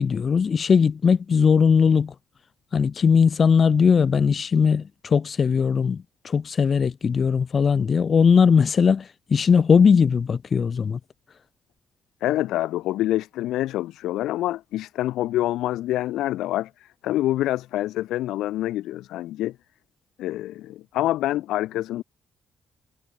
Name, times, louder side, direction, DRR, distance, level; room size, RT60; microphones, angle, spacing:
voice 1, 0.0-2.1 2.7-4.8 5.1-6.0 6.3-9.0 9.3-11.0, left 6 dB, 45° left, 0.6 m, -19 dB
voice 2, 12.2-19.5 20.2-22.0, left 14 dB, 85° left, 0.8 m, -26 dB
cardioid pair, 90°, 0 cm